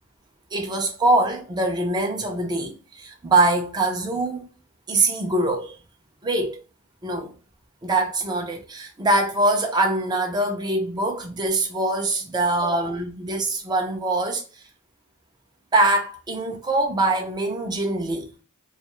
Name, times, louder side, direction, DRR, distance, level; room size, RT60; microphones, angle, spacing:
voice 1, 0.5-4.5 4.9-5.7 6.2-6.6 7.0-7.3 7.8-14.6 15.7-18.3, right 2 dB, 20° right, 0.5 m, -23 dB
2.4 x 2.3 x 2.9 m
head